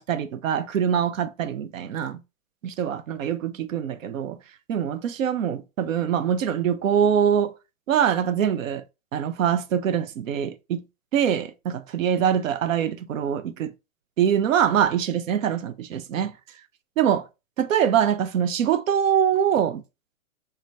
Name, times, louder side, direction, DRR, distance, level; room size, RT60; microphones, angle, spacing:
voice 1, 0.0-2.2 2.6-4.4 4.7-7.5 7.9-8.8 9.1-10.8 11.1-13.7 14.2-16.3 17.0-17.3 17.6-19.8, right 9 dB, 65° right, 0.5 m, -24 dB
3.2 x 2.2 x 2.6 m
hypercardioid pair, 160°, 42 cm